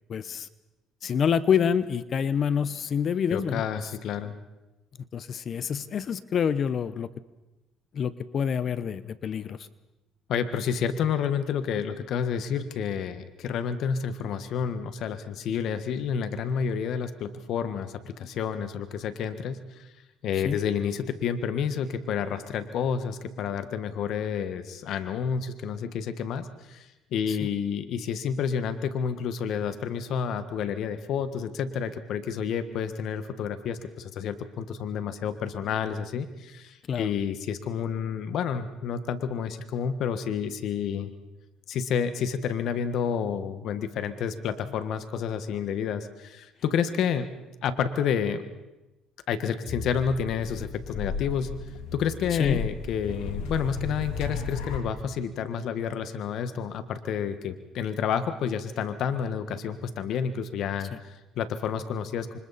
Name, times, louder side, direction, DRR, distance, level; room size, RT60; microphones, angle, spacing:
voice 1, 0.1-0.5 1.0-3.6 5.1-7.1 7.9-9.7 20.4-20.6 27.3-27.5 36.9-37.1 52.4-52.6 60.9-61.0, left 7 dB, 50° left, 15 dB, 1.0 m, -27 dB
voice 2, 3.3-4.3 10.3-19.9 20.2-41.1 41.7-47.3 47.6-48.4 49.3-62.4, left 7 dB, 65° left, 10 dB, 1.5 m, -30 dB
sound 1, 49.6-54.8, left 4 dB, 85° left, 3.8 m, -35 dB
29.0 x 25.5 x 4.3 m, 1.0 s
supercardioid pair, 90°, 0 cm